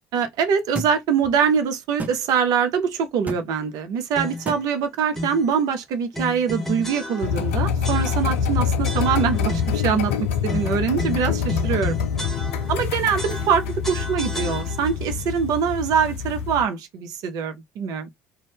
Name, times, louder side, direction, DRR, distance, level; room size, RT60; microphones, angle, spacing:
voice 1, 0.1-10.1 10.4-12.0 12.7-18.1, right 7 dB, 60° right, 0.6 m, -23 dB
sound 1, 0.7-0.9 2.0-2.2 3.3-3.4 4.5-4.6, right 3 dB, 20° right, 0.8 m, -29 dB
sound 2, 4.1-4.6 5.1-5.5 6.1-7.5 7.8-8.5 8.8-9.9 10.5-12.9 13.2-15.1, left 1 dB, 5° left, 1.0 m, -33 dB
sound 3, 7.2-16.7, left 7 dB, 75° left, 0.4 m, -25 dB
2.5 x 2.3 x 3.3 m
figure-of-eight pair, 55°, 7 cm